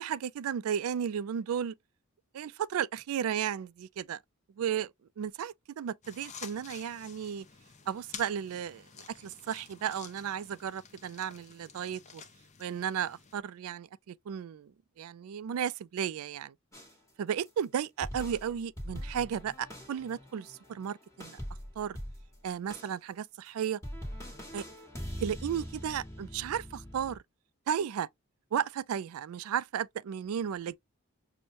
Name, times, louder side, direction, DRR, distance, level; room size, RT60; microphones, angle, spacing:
voice 1, 0.0-1.7 2.3-4.2 4.6-4.9 5.2-7.5 7.9-12.2 12.6-14.7 15.0-16.5 17.2-21.4 21.8-22.0 22.4-23.8 24.5-24.6 25.2-27.2 27.7-28.1 28.5-30.8, right 8 dB, 70° right, 0.3 m, -34 dB
sound 1, 6.0-13.4, left 6 dB, 30° left, 0.6 m, -50 dB
sound 2, 16.7-17.0 17.4-17.5 18.0-22.4 22.7-23.0 23.5-23.6 23.8-27.2, equal, 15° left, 1.3 m, -43 dB
6.2 x 2.1 x 2.5 m
head